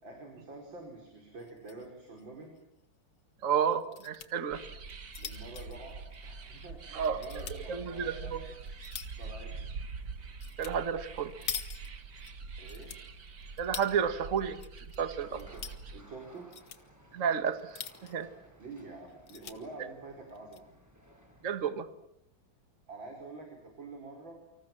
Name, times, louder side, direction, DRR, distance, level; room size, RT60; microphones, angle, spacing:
voice 1, 0.0-2.6 5.2-8.6 9.1-9.8 12.6-13.0 15.3-15.6 15.9-16.5 18.6-20.7 22.9-24.5, right 3 dB, 80° right, 2 dB, 5.8 m, -47 dB
sound 1, 1.4-1.9 2.2-2.3 2.6-2.7 3.7-4.3 4.8-6.6 7.0-7.6 8.2-9.3 10.4-10.7 11.0-12.3 12.6-13.9 14.4-15.0 15.3-15.8 16.3-16.8 17.5-18.2 18.7-18.8 19.1-19.6 20.3-20.6, left 8 dB, 80° left, 2.4 m, -43 dB
voice 2, 3.4-4.6 6.9-7.2 7.5-8.4 10.6-11.3 13.6-14.6 15.0-15.4 17.1-18.3 21.4-21.9, right 7 dB, 45° right, 10 dB, 1.7 m, -31 dB
sound 2, 4.5-16.0, right 4 dB, 60° right, 2.5 m, -44 dB
sound 3, 15.2-21.5, equal, 10° right, 6.6 m, -59 dB
29.5 x 25.5 x 7.6 m, 0.76 s
omnidirectional pair, 2.1 m